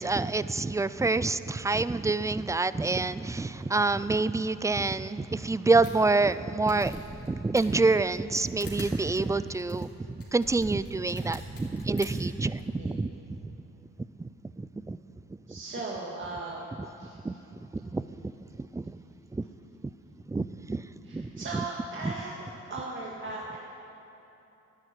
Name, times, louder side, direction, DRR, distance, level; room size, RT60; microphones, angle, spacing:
voice 1, 0.0-13.6 14.2-15.0 15.3-15.6 16.8-16.9 17.2-19.0 19.3-19.4 20.3-21.6 22.0-22.1, right 3 dB, 10° right, 15 dB, 0.4 m, -28 dB
sound 1, 5.8-5.9 6.3-6.4 6.7-7.3 7.6-12.6, left 2 dB, 50° left, 3.8 m, -46 dB
voice 2, 15.5-16.6 17.0-17.2 21.1-23.6, right 2 dB, 40° right, -3 dB, 1.9 m, -37 dB
11.0 x 10.5 x 9.8 m, 3.0 s
cardioid pair, 90°, 30 cm